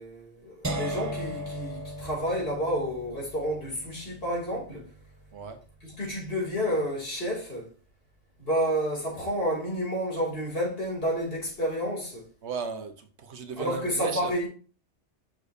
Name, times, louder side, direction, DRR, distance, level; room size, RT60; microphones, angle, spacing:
voice 1, 0.0-4.9 5.8-7.7 8.4-12.3 13.6-14.5, equal, 55° left, 2.7 m, -30 dB
sound 1, 0.6-6.6, right 1 dB, 30° right, 0.3 m, -38 dB
voice 2, 12.4-14.3, right 5 dB, 70° right, 1.1 m, -35 dB
6.7 x 6.1 x 2.6 m
omnidirectional pair, 1.2 m